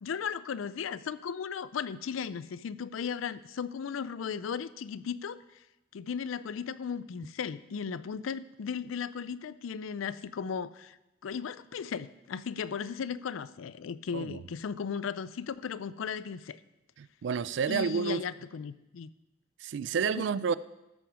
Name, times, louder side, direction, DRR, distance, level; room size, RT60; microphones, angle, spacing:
voice 1, 0.0-5.6 5.9-11.0 11.2-16.6 17.7-19.1 20.1-20.2, left 6 dB, 85° left, 0.4 m, -36 dB
voice 2, 17.0-18.2 19.6-20.6, right 6 dB, 65° right, 0.3 m, -30 dB
13.0 x 6.2 x 4.8 m
head